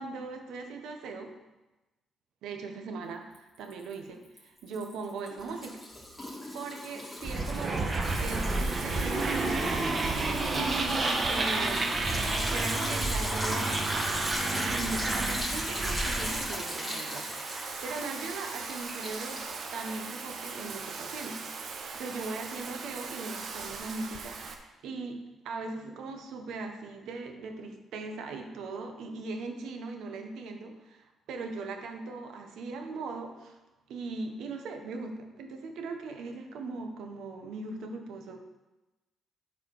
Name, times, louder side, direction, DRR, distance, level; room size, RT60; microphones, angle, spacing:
voice 1, 0.0-1.3 2.4-5.8 6.5-9.9 10.7-12.0 12.5-17.3 17.6-21.4 21.7-33.6 33.9-38.4, right 3 dB, 80° right, 4 dB, 1.3 m, -39 dB
Liquid, 3.3-3.9 4.3-20.4, left 1 dB, 5° left, 3.5 m, -39 dB
sound 1, 7.2-16.6, right 2 dB, 35° right, 1.4 m, -30 dB
Bathtub (filling or washing), 8.0-24.5, right 5 dB, 60° right, 1.1 m, -40 dB
12.5 x 4.9 x 4.9 m, 1.1 s
cardioid pair, 90°, 0 cm